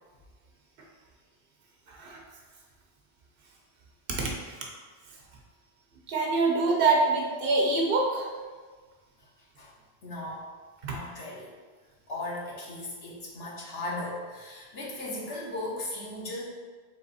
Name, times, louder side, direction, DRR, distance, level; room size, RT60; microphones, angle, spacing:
voice 1, 1.9-2.2 4.1-4.3 6.1-8.3 10.8-10.9, right 3 dB, 60° right, -1 dB, 0.9 m, -25 dB
voice 2, 10.0-10.4 10.9-11.5 12.1-16.4, left 1 dB, 70° left, -5 dB, 1.1 m, -37 dB
3.4 x 3.3 x 4.0 m, 1.4 s
omnidirectional pair, 1.1 m